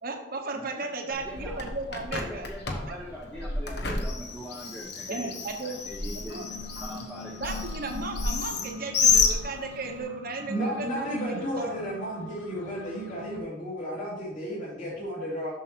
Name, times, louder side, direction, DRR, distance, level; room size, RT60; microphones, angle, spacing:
voice 1, 0.0-2.5 2.8-2.9 5.1-5.8 6.1-6.4 7.4-11.7, right 3 dB, 50° right, 4 dB, 1.1 m, -35 dB
voice 2, 0.5-1.6 2.2-5.3 5.6-7.6 9.1-9.5, equal, ahead, -4 dB, 0.9 m, -42 dB
Bird, 1.1-10.0, left 5 dB, 55° left, 1.1 m, -30 dB
sound 1, 6.3-13.4, left 4 dB, 80° left, 1.1 m, -43 dB
voice 3, 10.5-15.5, equal, 40° left, -10 dB, 2.5 m, -33 dB
7.3 x 6.4 x 4.4 m, 0.89 s
head